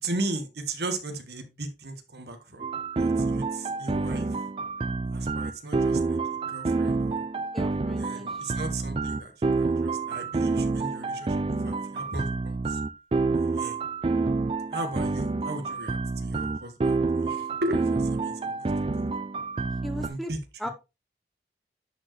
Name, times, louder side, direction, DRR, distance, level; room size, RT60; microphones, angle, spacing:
voice 1, 0.0-2.7 3.0-4.4 5.1-6.2 6.5-7.3 8.0-12.8 13.5-13.8 14.7-19.1 19.9-20.7, right 2 dB, 70° right, 1.4 m, -36 dB
sound 1, 2.6-20.1, right 3 dB, 30° right, 0.3 m, -28 dB
voice 2, 7.5-8.4 19.8-20.3 20.6-20.7, equal, ahead, 0.8 m, -37 dB
10.5 x 4.4 x 3.1 m
head